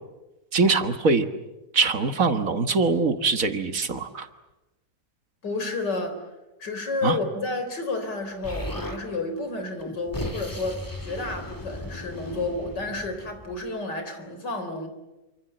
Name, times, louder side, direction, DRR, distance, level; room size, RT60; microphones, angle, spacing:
voice 1, 0.5-1.3 1.7-4.3 7.0-7.2, right 4 dB, 55° right, 8 dB, 1.8 m, -23 dB
voice 2, 5.4-6.2 6.6-14.9, left 3 dB, 85° left, 7 dB, 4.5 m, -31 dB
Explosion, 8.4-9.0 9.8-13.7, left 1 dB, 10° left, 2.2 m, -36 dB
27.5 x 25.5 x 7.9 m, 1.0 s
omnidirectional pair, 1.8 m